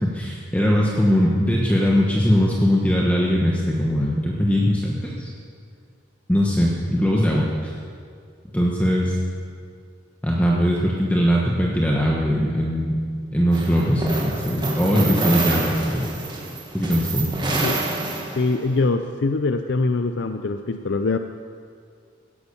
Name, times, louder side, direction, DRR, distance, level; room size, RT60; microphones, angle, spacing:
voice 1, 0.0-5.3 6.3-7.7 8.5-9.2 10.2-13.0 13.3-16.0 16.7-17.3, equal, 5° left, -3 dB, 1.2 m, -20 dB
sound 1, 13.5-18.7, right 2 dB, 25° right, 1.9 m, -27 dB
voice 2, 18.4-21.2, left 3 dB, 65° left, 8 dB, 0.5 m, -23 dB
17.0 x 10.0 x 7.0 m, 2.2 s
head